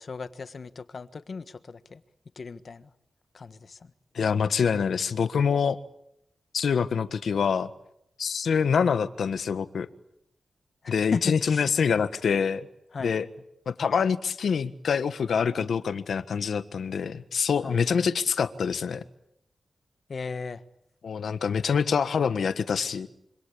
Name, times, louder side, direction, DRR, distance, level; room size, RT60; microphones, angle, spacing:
voice 1, 0.0-2.0 2.3-2.9 3.3-3.9 10.8-11.7 12.9-13.1 17.6-18.0 20.1-20.6, left 4 dB, 55° left, 12 dB, 1.5 m, -37 dB
voice 2, 4.1-5.8 6.5-7.7 8.2-9.9 10.9-12.7 13.0-13.3 13.7-19.0 21.0-23.1, left 6 dB, 80° left, 12 dB, 1.4 m, -25 dB
26.5 x 25.5 x 8.7 m, 0.78 s
wide cardioid pair, 105°, 0 cm